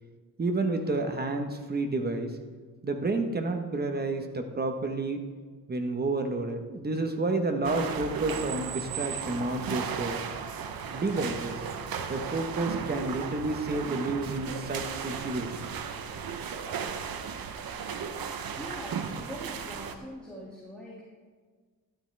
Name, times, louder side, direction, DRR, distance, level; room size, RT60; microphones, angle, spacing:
voice 1, 0.4-2.4 2.8-5.2 5.7-10.3 10.9-11.7 12.1-15.8, right 2 dB, 25° right, 5 dB, 1.1 m, -30 dB
sound 1, 7.6-20.0, right 7 dB, 65° right, 0.9 m, -35 dB
voice 2, 18.6-21.0, equal, 5° left, -6 dB, 2.2 m, -42 dB
13.0 x 12.0 x 3.4 m, 1.5 s
cardioid pair, 125°, 38 cm